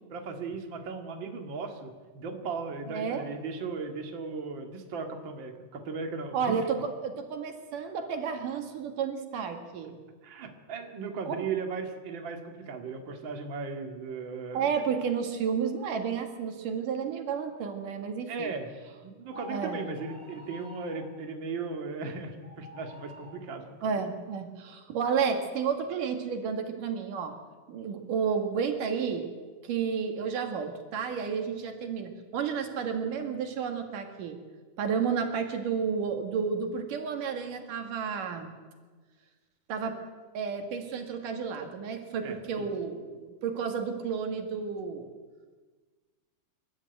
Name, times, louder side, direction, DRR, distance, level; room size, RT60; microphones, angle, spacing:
voice 1, 0.1-6.6 10.2-14.7 18.3-18.7 19.0-23.9 42.2-42.7, right 4 dB, 40° right, 4 dB, 2.6 m, -37 dB
voice 2, 2.9-3.2 6.3-10.0 11.3-11.5 14.5-18.5 19.5-19.8 23.8-27.4 27.7-29.3 29.6-34.4 34.8-38.5 39.7-40.0 40.3-45.1, right 6 dB, 85° right, 5 dB, 3.6 m, -31 dB
sound 1, 19.3-21.1 22.4-23.4, left 2 dB, 5° left, 7.1 m, -46 dB
27.5 x 13.5 x 9.3 m, 1.4 s
omnidirectional pair, 3.7 m